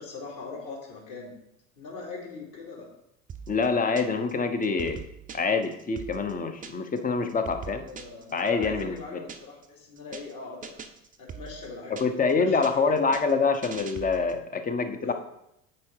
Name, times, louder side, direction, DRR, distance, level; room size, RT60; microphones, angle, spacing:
voice 1, 0.0-1.4 1.8-2.9 7.7-10.8 11.2-12.0 12.3-12.9 15.0-15.1, left 4 dB, 50° left, -2 dB, 2.8 m, -41 dB
sound 1, 3.3-4.3 4.6-7.0 7.3-9.7 10.0-10.3 10.6-12.3 12.6-14.4, right 6 dB, 20° right, 0.6 m, -42 dB
voice 2, 3.5-5.0 5.3-7.8 8.3-9.0 11.9-15.1, left 4 dB, 20° left, 7 dB, 0.8 m, -26 dB
7.5 x 4.5 x 4.5 m, 0.79 s
hypercardioid pair, 80°, 42 cm